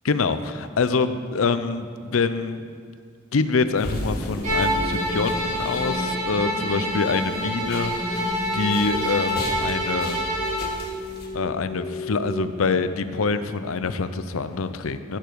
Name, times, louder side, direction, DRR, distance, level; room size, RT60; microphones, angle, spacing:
voice 1, 0.0-2.6 3.3-8.3 8.5-10.2 11.3-15.2, left 4 dB, 80° left, 11 dB, 0.6 m, -25 dB
sound 1, 3.8-11.3, left 1 dB, 50° left, 1.7 m, -36 dB
sound 2, 4.0-12.9, equal, 5° left, 1.3 m, -34 dB
Bowed string instrument, 4.4-10.7, equal, 35° right, 3.2 m, -27 dB
15.0 x 7.1 x 4.6 m, 2.2 s
head